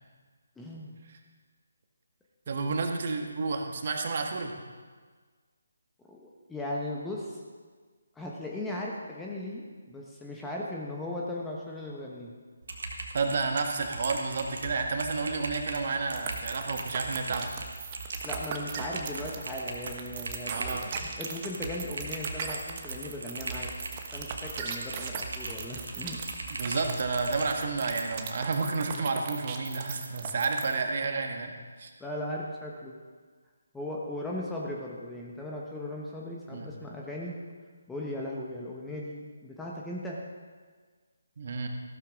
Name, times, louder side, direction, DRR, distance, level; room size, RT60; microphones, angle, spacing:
voice 1, 0.6-1.0 2.5-2.7 6.1-7.4 8.1-12.3 18.2-23.8 24.1-26.2 32.0-33.0 33.7-37.4 37.9-40.2, left 1 dB, 5° left, -3 dB, 1.2 m, -37 dB
voice 2, 2.5-4.5 13.1-17.5 20.5-20.9 26.6-31.5 31.8-31.9 36.5-36.7 41.4-41.7, right 4 dB, 45° right, 4 dB, 1.5 m, -30 dB
Typing, 12.6-28.1, right 2 dB, 60° right, 1.9 m, -39 dB
sound 1, 16.2-30.8, right 8 dB, 30° right, 1.1 m, -38 dB
15.0 x 13.0 x 3.7 m, 1.5 s
figure-of-eight pair, 145°, 0 cm